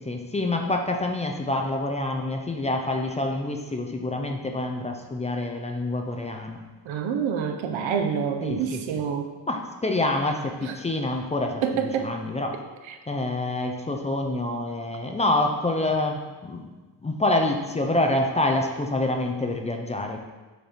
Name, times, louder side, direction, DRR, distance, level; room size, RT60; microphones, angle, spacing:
voice 1, 0.0-6.6 8.4-8.8 9.5-12.6 13.1-16.6 17.0-20.2, left 2 dB, 15° left, 3 dB, 0.5 m, -27 dB
voice 2, 6.8-9.3 10.6-10.7 11.6-12.1 12.9-13.0, right 7 dB, 90° right, 5 dB, 1.0 m, -27 dB
8.0 x 4.4 x 5.0 m, 1.3 s
wide cardioid pair, 170°, 45 cm